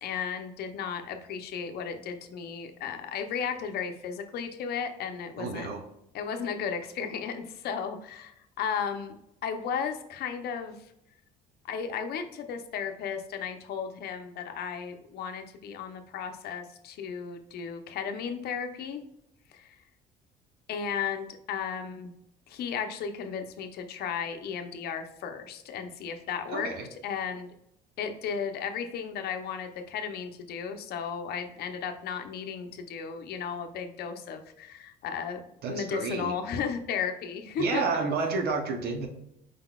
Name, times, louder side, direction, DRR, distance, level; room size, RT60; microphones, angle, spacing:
voice 1, 0.0-5.7 6.1-10.7 11.6-19.0 19.5-19.7 20.7-22.1 22.5-27.5 28.0-35.4 35.7-37.9, left 7 dB, 70° left, 7 dB, 0.7 m, -34 dB
voice 2, 5.4-5.8 26.5-26.9 35.6-36.3 37.6-39.1, right 4 dB, 70° right, 4 dB, 0.8 m, -30 dB
4.9 x 3.9 x 2.3 m, 0.81 s
cardioid pair, 110°, 17 cm